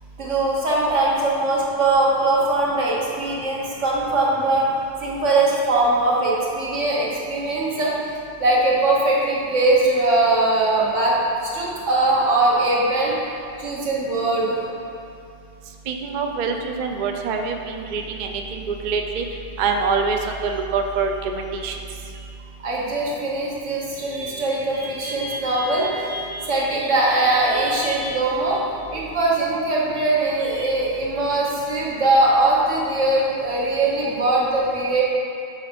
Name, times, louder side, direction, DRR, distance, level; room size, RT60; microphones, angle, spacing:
voice 1, 0.2-4.6 5.0-7.9 8.4-11.1 11.4-13.1 13.6-14.6 22.6-28.6 28.9-35.0, right 2 dB, 75° right, -4 dB, 1.5 m, -21 dB
voice 2, 15.9-19.2 19.6-21.8, right 5 dB, 55° right, 3 dB, 0.5 m, -25 dB
5.5 x 5.0 x 5.1 m, 2.5 s
omnidirectional pair, 1.3 m